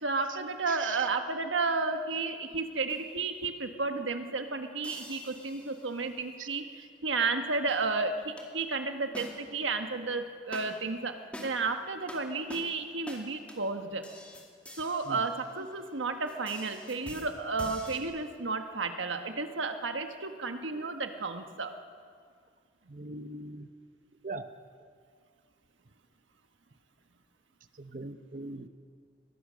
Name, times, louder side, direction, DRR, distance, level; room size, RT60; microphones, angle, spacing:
voice 1, 0.0-14.1 14.8-21.7, right 4 dB, 75° right, 6 dB, 1.4 m, -32 dB
sound 1, 2.9-3.2 4.8-6.1 7.7-7.8 8.4-8.5 9.1-9.7 10.5-10.9 11.3-11.7 12.1-12.2 12.5-12.7 13.1-13.2 13.5-13.6 14.0-15.9 16.3-18.0, left 1 dB, 5° left, 2.3 m, -46 dB
voice 2, 22.9-23.7 24.2-24.5 27.8-28.7, right 2 dB, 40° right, 10 dB, 0.8 m, -40 dB
22.0 x 19.5 x 6.4 m, 2.2 s
head